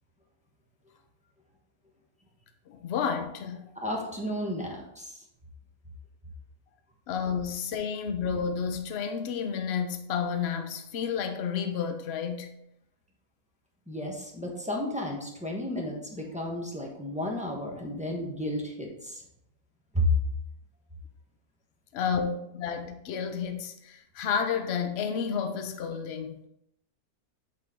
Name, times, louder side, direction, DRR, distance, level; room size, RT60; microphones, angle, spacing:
voice 1, 2.7-3.7 7.1-12.6 21.9-26.4, left 6 dB, 55° left, 0.9 m, -31 dB
voice 2, 3.8-5.2 13.9-19.2 19.9-20.1, left 1 dB, 5° right, 1.0 m, -32 dB
8.5 x 3.8 x 3.7 m
omnidirectional pair, 1.6 m